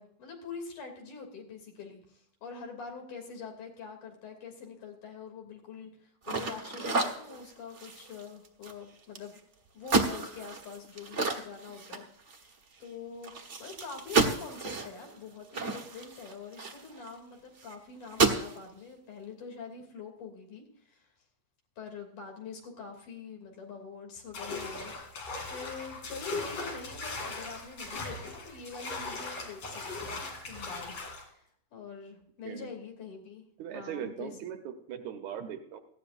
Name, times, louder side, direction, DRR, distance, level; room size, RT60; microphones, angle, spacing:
voice 1, 0.0-9.4 9.7-12.0 12.3-13.3 13.6-21.1 21.8-31.0 31.3-33.4 33.7-34.3, left 5 dB, 85° left, 2 dB, 4.4 m, -45 dB
sound 1, 6.2-9.4 9.8-12.5 12.8-12.9 13.2-17.1 17.6-17.7 18.0-18.6, right 4 dB, 45° right, 0.9 m, -31 dB
sound 2, 24.3-31.2, left 3 dB, 55° left, 3.9 m, -39 dB
voice 2, 33.6-35.8, right 9 dB, 75° right, 6 dB, 2.4 m, -39 dB
18.0 x 15.5 x 2.6 m, 0.66 s
omnidirectional pair, 3.5 m